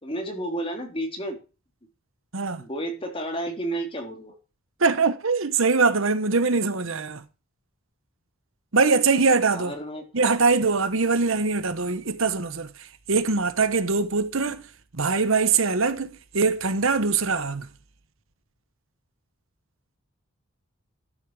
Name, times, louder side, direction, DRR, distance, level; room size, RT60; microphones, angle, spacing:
voice 1, 0.0-1.4 2.6-4.4 9.5-10.0, right 1 dB, 25° left, 3.3 m, -31 dB
voice 2, 2.3-2.7 4.8-7.2 8.7-9.7 10.1-17.7, right 4 dB, 65° right, 1.1 m, -23 dB
12.5 x 7.5 x 4.8 m
head